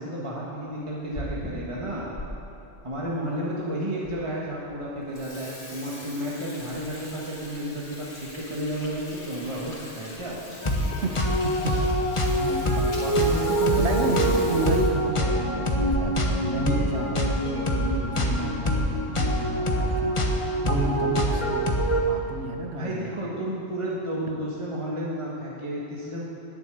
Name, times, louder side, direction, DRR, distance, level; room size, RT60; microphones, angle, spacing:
voice 1, 0.0-2.1 2.8-10.4 13.0-14.5 22.7-26.2, equal, 25° right, -6 dB, 1.6 m, -32 dB
Water tap faucet / Sink (filling or washing), 0.8-2.3 2.8-2.9 3.6-3.7 4.0-4.1 4.5-4.7 5.0-16.4 16.7-16.8 17.1-17.2 18.0-18.3 18.7-19.1, left 1 dB, 85° left, 2.8 m, -40 dB
sound 1, 10.6-22.0, equal, 30° left, 1.1 m, -24 dB
voice 2, 10.9-11.2 11.4-11.8 12.4-13.2 13.8-21.8 22.1-23.2, right 3 dB, 70° right, 4 dB, 1.4 m, -32 dB
12.0 x 7.1 x 9.3 m, 2.9 s
omnidirectional pair, 1.2 m